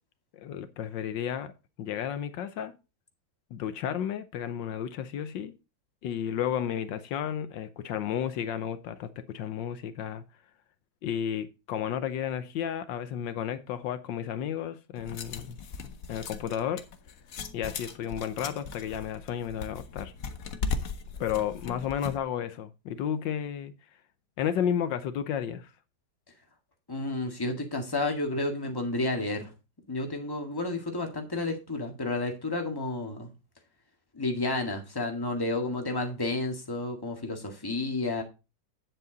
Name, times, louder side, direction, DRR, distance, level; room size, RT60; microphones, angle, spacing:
voice 1, 0.3-1.5 1.8-2.7 3.5-5.5 6.0-10.2 11.0-15.6 16.1-16.8 17.5-20.1 21.2-23.7 24.4-25.7, left 9 dB, 75° left, 1.4 m, -32 dB
sound 1, 15.0-22.2, left 5 dB, 50° left, 1.3 m, -38 dB
voice 2, 26.9-29.5 29.9-33.3 34.2-38.2, left 2 dB, 10° left, 1.7 m, -31 dB
9.4 x 7.8 x 3.9 m
omnidirectional pair, 2.0 m